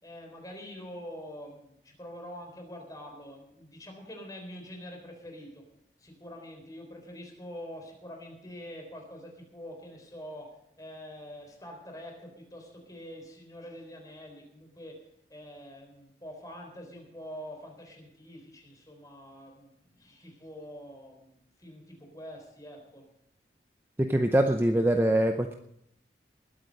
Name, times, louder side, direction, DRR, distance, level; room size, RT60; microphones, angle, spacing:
voice 1, 0.0-5.6 6.0-10.5 10.8-15.0 15.3-23.0, equal, 20° left, 2 dB, 3.8 m, -45 dB
voice 2, 24.0-25.5, right 1 dB, 15° right, 5 dB, 0.6 m, -24 dB
20.0 x 9.0 x 5.3 m, 0.73 s
head